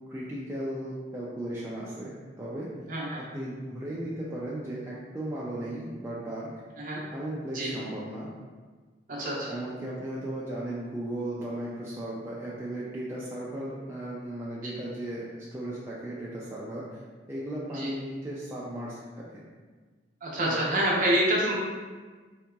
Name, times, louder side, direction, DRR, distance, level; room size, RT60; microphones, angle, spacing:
voice 1, 0.1-2.7 3.2-6.5 7.1-8.3 9.5-17.0 17.3-19.4 20.4-20.6, right 1 dB, 15° right, -7 dB, 0.3 m, -36 dB
voice 2, 2.9-3.2 6.8-7.0 7.5-7.7 9.1-9.6 17.7-17.9 20.2-21.6, right 1 dB, 45° right, -4 dB, 0.7 m, -27 dB
3.7 x 2.8 x 2.2 m, 1.4 s
head